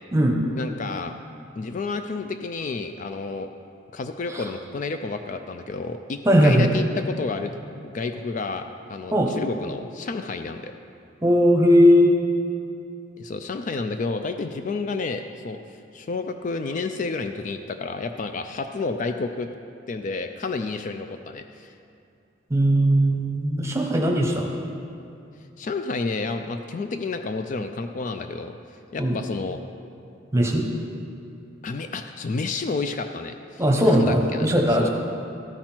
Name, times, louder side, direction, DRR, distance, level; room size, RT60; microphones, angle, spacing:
voice 1, 0.5-1.1 1.6-3.5 3.9-7.5 7.8-10.7 13.2-15.6 15.9-19.5 19.9-21.7 25.6-28.6 28.9-29.6 31.6-34.9, left 4 dB, 40° left, 7 dB, 0.3 m, -30 dB
voice 2, 6.2-6.7 9.1-9.3 11.2-12.1 22.5-24.5 29.0-29.2 30.3-30.7 33.6-34.9, equal, 15° right, 1 dB, 0.9 m, -18 dB
13.0 x 5.9 x 4.4 m, 2.6 s
head